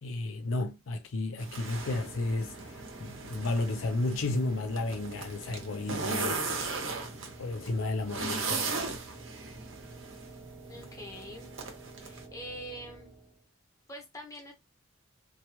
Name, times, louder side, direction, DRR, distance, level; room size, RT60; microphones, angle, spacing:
voice 1, 0.0-2.7 3.0-7.0 7.4-8.9, left 2 dB, 80° left, 0.5 m, -33 dB
sound 1, 1.4-12.2, right 4 dB, 70° right, 0.9 m, -38 dB
sound 2, 1.8-13.5, right 2 dB, 15° right, 0.8 m, -50 dB
voice 2, 10.7-11.5 12.0-13.1 13.9-14.5, equal, 15° left, 0.9 m, -44 dB
3.0 x 2.2 x 2.9 m
head